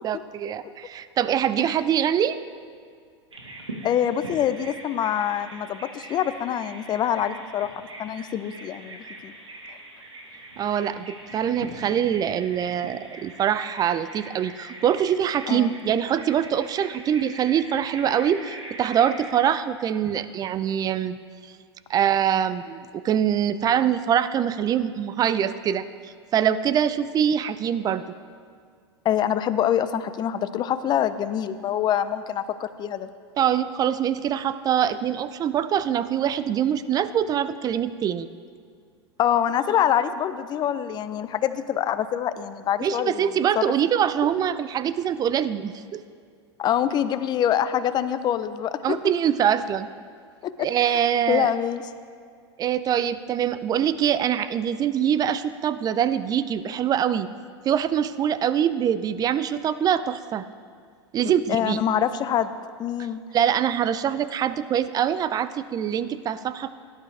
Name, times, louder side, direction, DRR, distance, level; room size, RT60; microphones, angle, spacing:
voice 1, 0.0-2.4 10.6-21.2 21.9-28.0 33.4-38.3 42.8-46.0 48.8-49.9 50.6-51.5 52.6-57.3 57.6-60.4 61.1-61.8 63.3-66.7, right 9 dB, 25° right, 14 dB, 0.5 m, -24 dB
Bird vocalization bird call bird song, 3.3-19.4, right 2 dB, 90° right, 1.7 m, -41 dB
voice 2, 3.8-9.3 15.5-15.8 29.0-33.1 39.2-43.6 46.6-49.0 50.4-51.0 51.3-51.8 61.5-63.2, left 10 dB, 30° left, 12 dB, 0.6 m, -25 dB
17.0 x 11.0 x 3.3 m, 2.1 s
hypercardioid pair, 100°, 15 cm